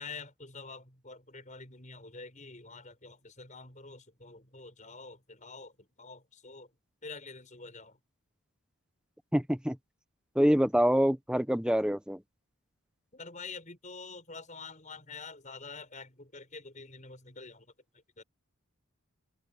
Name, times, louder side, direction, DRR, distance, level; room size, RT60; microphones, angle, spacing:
voice 1, 0.0-5.7 6.0-6.7 7.0-8.0 13.1-17.7 18.2-18.3, left 4 dB, 35° left, 6.3 m, -47 dB
voice 2, 9.3-9.8 10.4-12.2, equal, 5° right, 1.0 m, -25 dB
head